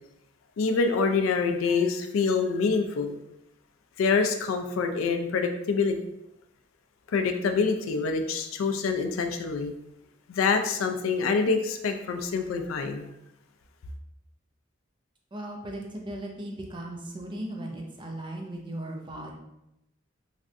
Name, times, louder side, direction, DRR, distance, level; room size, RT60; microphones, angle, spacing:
voice 1, 0.6-3.2 4.0-6.0 7.1-9.7 10.3-13.1, left 4 dB, 80° left, 6 dB, 0.3 m, -26 dB
voice 2, 15.3-19.3, right 1 dB, 25° right, 0 dB, 0.5 m, -37 dB
3.2 x 2.5 x 2.5 m, 0.86 s
head